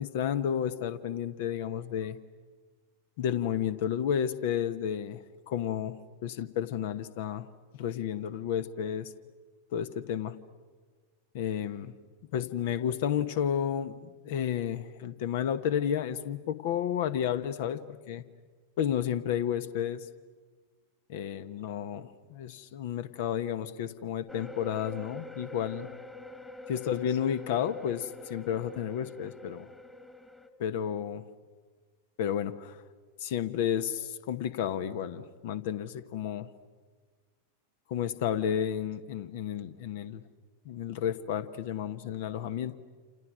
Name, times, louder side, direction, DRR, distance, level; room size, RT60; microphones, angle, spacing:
voice 1, 0.0-2.2 3.2-7.5 7.7-9.1 9.7-10.4 11.3-11.9 12.3-18.2 18.8-20.1 21.1-25.9 26.7-29.7 30.6-31.2 32.2-32.8 33.2-36.5 37.9-40.2 40.6-42.8, left 9 dB, 50° left, 14 dB, 1.2 m, -32 dB
sound 1, 24.3-30.5, left 2 dB, 10° left, 1.9 m, -45 dB
28.5 x 28.5 x 6.3 m, 1.5 s
figure-of-eight pair, 90°, 0 cm